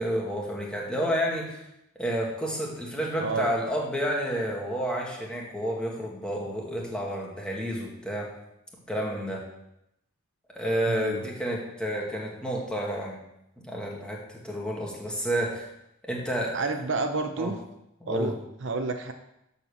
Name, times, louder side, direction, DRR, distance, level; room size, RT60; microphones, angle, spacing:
voice 1, 0.0-1.6 2.0-8.3 8.9-9.4 10.5-13.2 13.6-15.7 16.0-16.6 17.4-17.5 18.0-18.3, equal, 5° left, -2 dB, 2.0 m, -30 dB
voice 2, 3.2-3.5 10.9-11.3 16.5-17.6 18.1-18.3 18.6-19.1, right 3 dB, 60° right, 7 dB, 0.7 m, -29 dB
12.5 x 4.3 x 7.1 m, 0.83 s
head